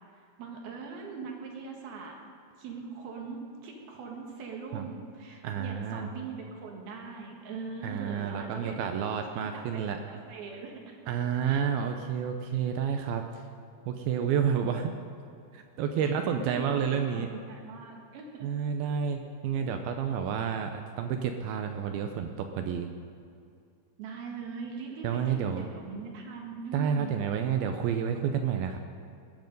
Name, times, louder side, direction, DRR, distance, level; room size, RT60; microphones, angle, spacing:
voice 1, 0.1-2.1 2.6-11.0 11.4-11.6 16.0-16.1 16.5-18.5 24.0-27.1, right 4 dB, 65° right, 0 dB, 3.2 m, -41 dB
voice 2, 5.4-6.1 7.8-10.0 11.1-13.4 13.9-15.0 15.5-17.3 18.4-22.9 25.0-25.6 26.7-28.8, right 7 dB, 85° right, 5 dB, 2.2 m, -30 dB
20.0 x 11.5 x 5.3 m, 2.4 s
omnidirectional pair, 5.2 m